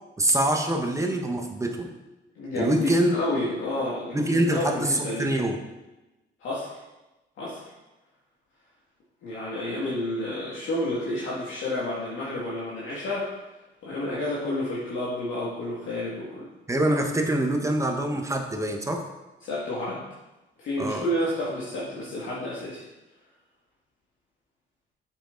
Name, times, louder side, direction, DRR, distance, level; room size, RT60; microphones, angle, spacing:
voice 1, 0.2-1.9 2.5-3.1 4.1-5.6 16.7-19.0 20.8-21.0, right 1 dB, 15° right, 3 dB, 1.2 m, -25 dB
voice 2, 2.4-5.3 6.4-6.7 7.4-7.6 9.2-13.3 13.8-16.5 19.4-20.0 20.6-22.8, left 1 dB, 80° left, -8 dB, 2.3 m, -30 dB
7.8 x 7.1 x 4.0 m, 1.0 s
cardioid pair, 90°, 20 cm